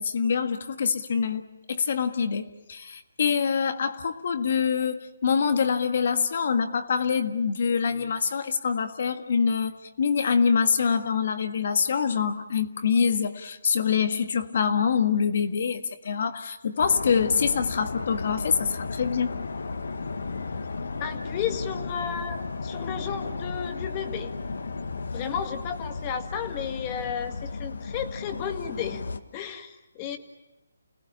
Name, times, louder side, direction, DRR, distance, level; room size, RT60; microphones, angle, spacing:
voice 1, 0.0-19.3, left 6 dB, 50° left, 8 dB, 1.7 m, -25 dB
sound 1, 16.8-29.2, left 4 dB, 75° left, 1.7 m, -34 dB
voice 2, 21.0-24.3 25.1-29.0 29.3-30.2, left 8 dB, 20° left, 7 dB, 1.8 m, -33 dB
29.0 x 18.5 x 8.8 m, 0.97 s
hypercardioid pair, 165°, 0 cm